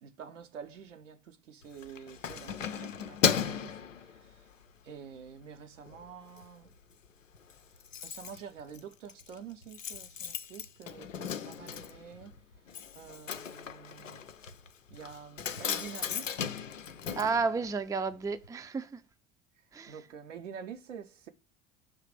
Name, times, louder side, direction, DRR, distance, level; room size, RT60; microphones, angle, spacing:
voice 1, 0.0-4.5 4.8-6.7 8.0-12.3 12.9-14.3 14.9-16.5 17.6-17.7 19.9-21.3, right 7 dB, 75° right, 1.1 m, -48 dB
Keys jangling, 1.6-4.7 5.2-5.4 5.8-6.5 6.7-6.8 7.1-7.2 7.3-18.2 18.4-18.5, left 7 dB, 85° left, 0.6 m, -36 dB
voice 2, 17.2-19.0 19.7-19.9, right 4 dB, 10° right, 0.5 m, -31 dB
6.7 x 3.2 x 4.8 m
figure-of-eight pair, 65°, 37 cm